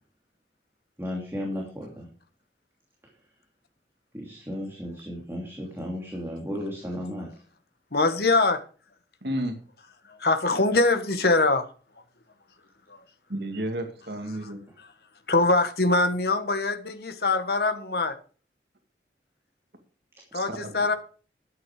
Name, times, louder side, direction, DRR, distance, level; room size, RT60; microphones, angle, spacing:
voice 1, 1.0-2.1 4.1-7.3 14.7-14.8, equal, 15° right, -2 dB, 3.0 m, -34 dB
voice 2, 7.9-8.6 10.2-11.6 12.9-13.0 15.3-18.2 20.3-21.0, left 2 dB, 60° left, 8 dB, 1.6 m, -23 dB
voice 3, 9.2-9.6 13.3-14.6 20.3-21.0, right 1 dB, 70° right, 6 dB, 2.3 m, -32 dB
12.5 x 9.6 x 5.0 m, 0.38 s
head